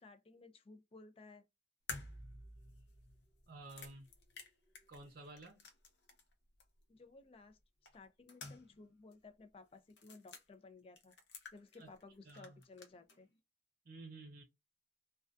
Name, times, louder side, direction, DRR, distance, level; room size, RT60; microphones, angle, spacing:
voice 1, 0.0-1.4 6.9-7.6 7.9-11.1 11.5-13.3, left 3 dB, 30° left, 0.4 m, -57 dB
sound 1, 1.9-6.3 6.6-6.7 7.9-8.9 9.1-9.2 9.9-10.4 11.0-12.0 12.3-13.2, left 4 dB, 70° left, 0.7 m, -52 dB
voice 2, 3.5-4.1 4.9-5.6 11.8-11.9 12.2-12.6 13.8-14.4, right 2 dB, 55° right, 0.7 m, -52 dB
2.3 x 2.2 x 2.4 m
head